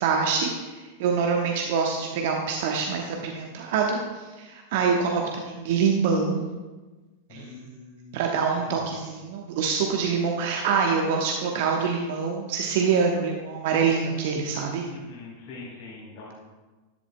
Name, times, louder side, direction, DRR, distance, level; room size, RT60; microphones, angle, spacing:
voice 1, 0.0-6.4 7.3-7.5 8.1-14.9, right 5 dB, 50° right, 1 dB, 1.0 m, -25 dB
voice 2, 7.3-8.3 8.5-8.9 14.9-16.3, left 3 dB, 45° left, -5 dB, 2.9 m, -43 dB
13.5 x 11.0 x 2.2 m, 1.2 s
figure-of-eight pair, 90°, 0 cm